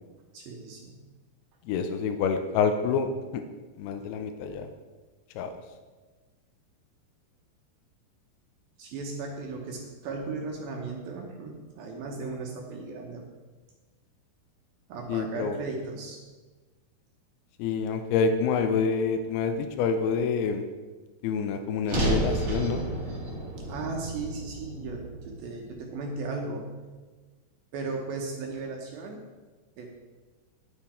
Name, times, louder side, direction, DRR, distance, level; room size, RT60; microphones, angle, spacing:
voice 1, 0.3-1.0 8.8-13.2 14.9-16.2 23.7-26.7 27.7-29.2 29.8-29.9, right 3 dB, 70° right, 1 dB, 2.5 m, -36 dB
voice 2, 1.7-3.1 3.3-3.4 3.8-4.7 5.4-5.5 15.1-15.6 17.6-20.6 21.2-22.8, left 5 dB, 80° left, 7 dB, 2.4 m, -27 dB
sound 1, 21.9-26.1, right 2 dB, 45° right, 1.1 m, -31 dB
10.5 x 8.2 x 4.3 m, 1.3 s
omnidirectional pair, 4.9 m